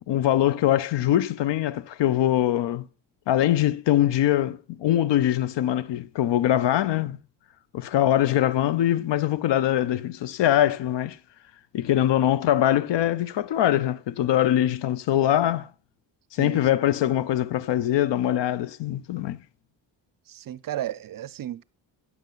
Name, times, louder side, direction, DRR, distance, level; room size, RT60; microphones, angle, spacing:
voice 1, 0.1-2.9 3.3-7.2 7.7-11.2 11.7-15.7 16.3-19.4, left 12 dB, 70° left, 0.5 m, -23 dB
voice 2, 16.4-16.7 20.3-21.6, right 12 dB, 50° right, 0.4 m, -33 dB
9.4 x 7.4 x 3.8 m
cardioid pair, 65°, 45 cm